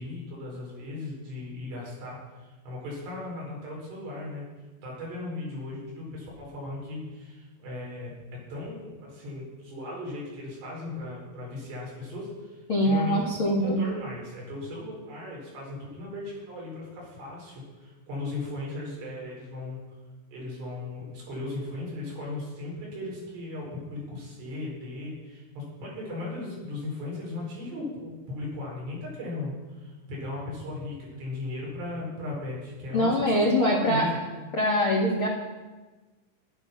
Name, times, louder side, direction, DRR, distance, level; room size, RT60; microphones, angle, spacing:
voice 1, 0.0-4.5 4.8-13.3 13.6-19.8 20.3-34.2, left 2 dB, 70° right, -4 dB, 6.6 m, -37 dB
voice 2, 12.7-13.9 32.9-34.1 34.5-35.3, equal, 50° left, -3 dB, 1.7 m, -23 dB
12.0 x 11.5 x 5.8 m, 1.2 s
omnidirectional pair, 5.1 m